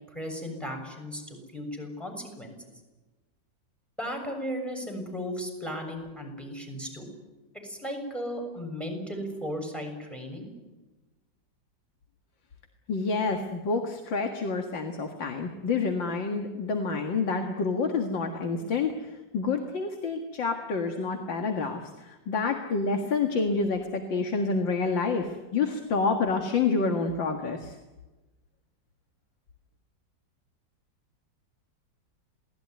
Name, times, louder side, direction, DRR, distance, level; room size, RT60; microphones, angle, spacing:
voice 1, 0.1-2.6 4.0-7.1 7.6-10.5, equal, ahead, 3 dB, 6.9 m, -36 dB
voice 2, 12.9-27.8, left 4 dB, 80° left, 5 dB, 2.5 m, -28 dB
27.5 x 19.5 x 9.4 m, 1.2 s
omnidirectional pair, 2.0 m